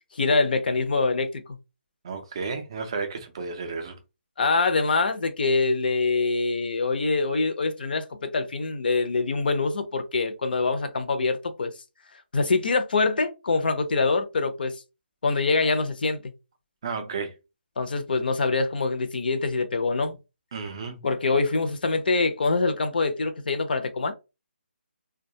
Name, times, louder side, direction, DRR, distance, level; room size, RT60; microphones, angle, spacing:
voice 1, 0.1-1.4 4.4-11.7 12.3-14.8 15.2-16.3 17.8-20.2 21.0-24.1, left 3 dB, 50° left, 0.5 m, -24 dB
voice 2, 2.0-4.0 16.8-17.4 20.5-21.0, right 4 dB, 25° right, 0.4 m, -32 dB
2.2 x 2.2 x 2.7 m
hypercardioid pair, 170°, 6 cm